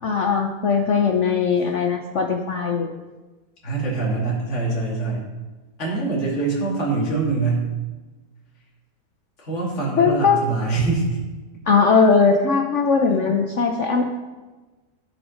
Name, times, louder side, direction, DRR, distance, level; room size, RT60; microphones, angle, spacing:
voice 1, 0.0-2.9 10.0-10.4 11.7-14.1, left 5 dB, 60° left, 3 dB, 0.8 m, -19 dB
voice 2, 3.6-5.3 5.8-7.7 9.4-11.2 13.1-13.3, right 3 dB, 40° left, -5 dB, 2.7 m, -24 dB
15.0 x 5.3 x 5.1 m, 1.2 s
omnidirectional pair, 1.9 m